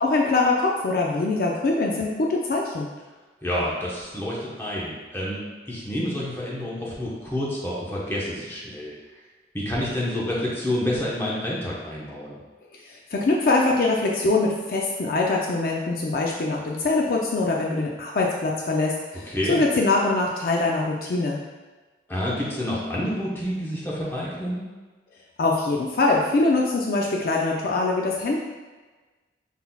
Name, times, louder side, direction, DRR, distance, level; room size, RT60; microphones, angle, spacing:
voice 1, 0.0-2.9 12.7-21.4 25.4-28.4, left 3 dB, 55° left, -1 dB, 0.4 m, -23 dB
voice 2, 3.4-5.4 5.7-8.9 9.5-12.4 19.3-19.6 22.1-24.7, left 1 dB, 15° left, -6 dB, 0.9 m, -28 dB
5.4 x 4.0 x 2.3 m, 1.3 s
head